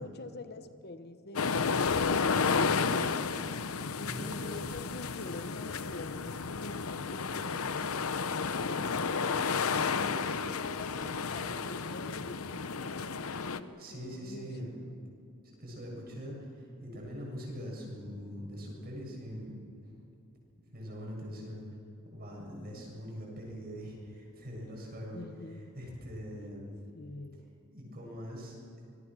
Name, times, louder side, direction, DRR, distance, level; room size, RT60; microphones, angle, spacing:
voice 1, 0.0-2.5 4.0-9.3 9.7-14.7 25.1-25.7 26.9-27.4, left 2 dB, 50° left, 9 dB, 1.1 m, -46 dB
sound 1, 1.4-13.6, left 5 dB, 75° left, 0.8 m, -32 dB
voice 2, 4.0-4.6 13.5-14.8 15.4-19.6 20.7-21.6 22.1-25.2 25.7-26.8 27.7-28.6, equal, 45° right, -2 dB, 7.5 m, -42 dB
26.0 x 21.0 x 6.3 m, 2.7 s
head